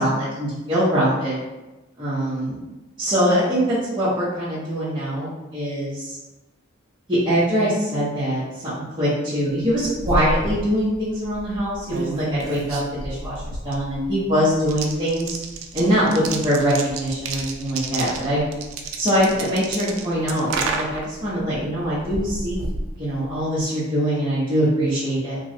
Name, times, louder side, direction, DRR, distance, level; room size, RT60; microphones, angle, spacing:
voice 1, 0.0-1.4 2.0-2.6 3.0-6.2 7.1-15.4 15.7-18.4 19.0-22.7 23.0-25.4, equal, 25° right, -11 dB, 0.8 m, -23 dB
sound 1, 9.6-23.6, right 3 dB, 85° right, 0.4 m, -31 dB
3.0 x 2.3 x 2.7 m, 1.0 s
head